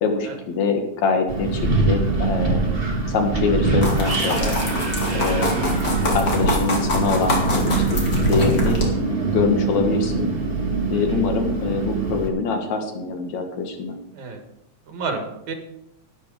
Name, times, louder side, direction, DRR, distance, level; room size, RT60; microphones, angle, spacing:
voice 1, 0.0-2.6 3.1-4.6 5.1-5.8 6.1-8.8 9.3-10.3 10.9-14.0, left 4 dB, 70° left, 4 dB, 2.9 m, -24 dB
Wind, 1.3-12.3, right 3 dB, 30° right, 1.1 m, -23 dB
sound 1, 3.8-8.9, left 1 dB, 35° left, 2.7 m, -23 dB
voice 2, 10.9-11.2 14.1-14.4 14.9-15.5, right 4 dB, 75° right, 5 dB, 3.1 m, -31 dB
11.5 x 10.5 x 5.0 m, 0.84 s
omnidirectional pair, 3.4 m